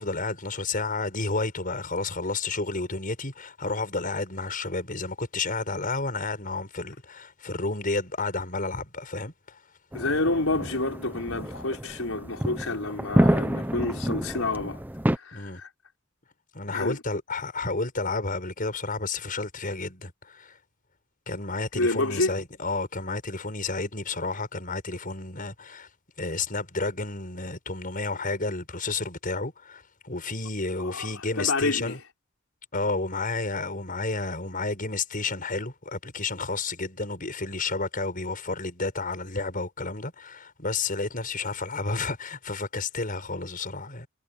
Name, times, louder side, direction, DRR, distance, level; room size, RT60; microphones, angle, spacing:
voice 1, 0.0-9.6 15.3-15.6 16.5-20.6 21.3-25.9 26.2-32.0 32.7-44.1, left 3 dB, 40° left, 6.6 m, -31 dB
voice 2, 9.9-14.8 15.1-15.7 16.7-17.0 21.7-22.4 30.8-32.0, left 2 dB, 80° left, 4.7 m, -28 dB
sound 1, 9.9-15.2, equal, 10° right, 0.9 m, -28 dB
head